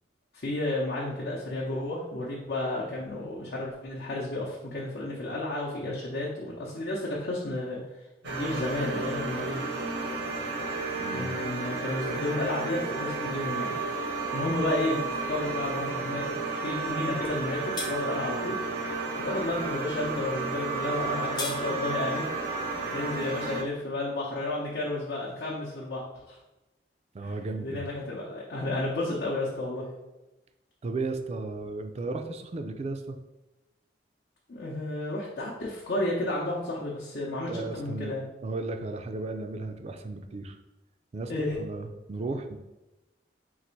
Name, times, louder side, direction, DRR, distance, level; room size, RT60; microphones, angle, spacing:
voice 1, 0.4-7.8 8.2-9.6 11.1-13.7 14.0-18.6 19.2-26.4 27.2-29.8 34.5-38.2 41.3-41.6, left 2 dB, 65° left, -5 dB, 0.7 m, -32 dB
sound 1, 8.2-23.6, right 3 dB, 80° right, 0.8 m, -32 dB
voice 2, 11.0-11.3 27.1-27.8 30.8-33.2 37.5-38.2 38.4-40.6 41.1-42.6, right 3 dB, 35° right, 6 dB, 0.4 m, -35 dB
sound 2, 17.2-17.4 17.7-17.9 20.9-21.6, left 3 dB, 25° left, 0.6 m, -34 dB
4.0 x 2.5 x 4.4 m, 1.0 s
head